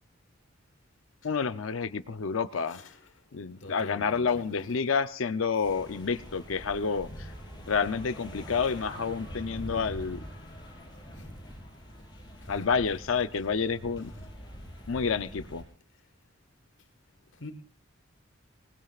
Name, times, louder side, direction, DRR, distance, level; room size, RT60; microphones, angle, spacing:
voice 1, 1.2-2.8 3.3-7.3 7.7-10.2 12.5-14.1 14.9-15.6, left 5 dB, 85° left, 0.6 m, -29 dB
voice 2, 2.5-3.2 3.6-4.8 11.1-11.3 12.4-12.6 13.3-13.5 14.0-14.3 17.3-17.5, left 2 dB, 65° left, 1.5 m, -47 dB
sound 1, 5.6-15.6, equal, 25° left, 5.3 m, -44 dB
26.0 x 19.5 x 2.4 m
head